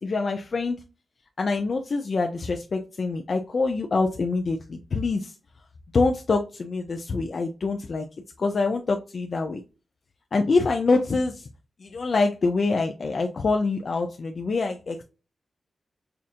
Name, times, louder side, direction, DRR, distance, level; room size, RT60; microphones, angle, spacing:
voice 1, 0.0-0.8 1.4-5.4 5.9-8.1 8.4-9.6 10.3-11.5 11.8-15.0, left 3 dB, 55° left, 3 dB, 0.5 m, -25 dB
5.6 x 2.5 x 2.5 m, 0.31 s
wide cardioid pair, 125°, 0 cm